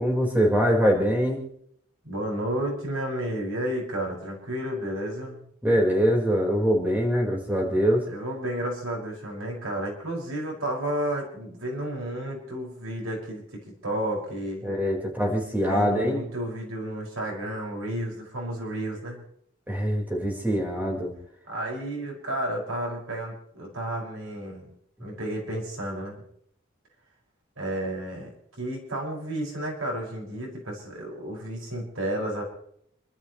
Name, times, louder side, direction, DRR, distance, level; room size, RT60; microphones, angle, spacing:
voice 1, 0.0-1.4 5.6-8.0 14.6-16.2 19.7-21.1, equal, 10° right, 0 dB, 4.5 m, -23 dB
voice 2, 2.0-5.4 8.1-14.6 15.6-19.2 21.5-24.7 25.0-26.2 27.6-28.3 28.6-32.4, right 1 dB, 90° right, -1 dB, 5.8 m, -32 dB
29.5 x 13.0 x 3.2 m, 0.69 s
head